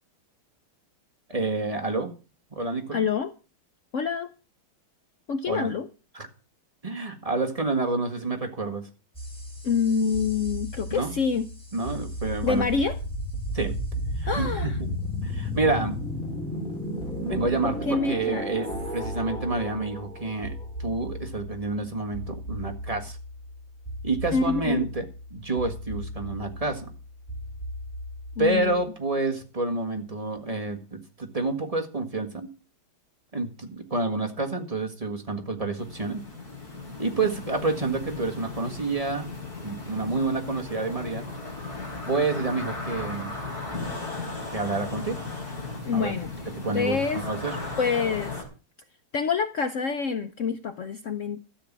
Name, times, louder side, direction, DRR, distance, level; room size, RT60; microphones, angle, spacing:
voice 1, 1.3-2.1 2.5-3.0 5.5-5.7 6.1-6.3 6.8-8.8 10.9-11.1 11.7-12.6 13.5-13.7 14.2-14.9 15.2-16.0 17.2-20.5 20.8-23.2 24.0-25.0 25.3-26.9 28.4-32.5 33.3-36.2 37.0-39.3 39.6-41.2 42.1-43.3 44.5-45.2 45.9-46.1 46.6-47.6, right 3 dB, 20° right, 2 dB, 1.5 m, -28 dB
voice 2, 2.9-3.3 3.9-4.3 5.3-5.9 9.6-11.5 12.4-13.0 14.2-14.8 17.6-18.5 24.3-24.9 28.4-28.8 45.8-46.3 46.7-47.2 47.8-48.4 49.1-51.4, left 5 dB, 85° left, 11 dB, 0.6 m, -26 dB
sound 1, 9.1-28.8, left 1 dB, ahead, 4.6 m, -34 dB
sound 2, 35.8-48.4, left 3 dB, 45° left, 5.0 m, -36 dB
13.0 x 7.6 x 7.3 m, 0.34 s
omnidirectional pair, 2.3 m